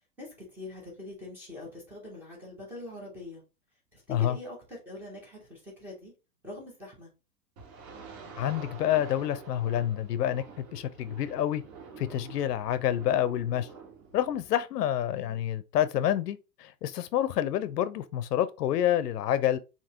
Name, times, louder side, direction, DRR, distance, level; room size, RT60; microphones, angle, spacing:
voice 1, 0.2-3.4 3.9-6.1 6.4-7.1 15.2-15.4, left 2 dB, 5° right, 0.6 m, -43 dB
sound 1, 7.6-14.5, right 5 dB, 60° right, 2.5 m, -47 dB
voice 2, 8.3-11.6 12.0-13.7 14.1-19.6, left 11 dB, 80° left, 0.7 m, -28 dB
5.1 x 2.9 x 2.8 m
hypercardioid pair, 160°, 47 cm